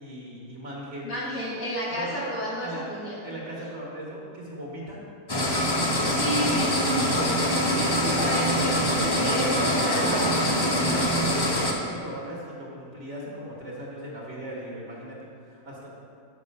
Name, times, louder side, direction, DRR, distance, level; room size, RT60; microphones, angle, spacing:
voice 1, 0.0-1.1 1.9-2.1 2.6-2.8 3.2-5.0 10.1-10.2 10.8-15.9, right 1 dB, 55° right, -4 dB, 1.9 m, -38 dB
voice 2, 1.0-3.1 6.1-10.8, equal, 65° left, -9 dB, 2.9 m, -31 dB
sound 1, 5.3-11.7, equal, 25° left, 0.5 m, -24 dB
8.4 x 5.4 x 5.3 m, 2.3 s
omnidirectional pair, 1.5 m